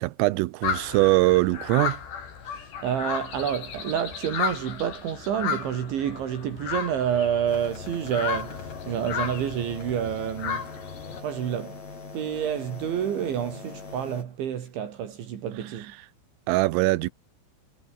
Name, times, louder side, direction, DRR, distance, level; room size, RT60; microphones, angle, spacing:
voice 1, 0.0-2.0 16.5-17.1, right 20 dB, 90° right, 3.5 m, -22 dB
sound 1, 0.6-11.2, left 7 dB, 60° left, 6.2 m, -34 dB
voice 2, 2.4-10.7 11.2-11.8 12.1-15.9, right 9 dB, 70° right, 4.9 m, -29 dB
sound 2, 7.5-14.2, left 4 dB, 35° left, 6.5 m, -41 dB
omnidirectional pair, 5.7 m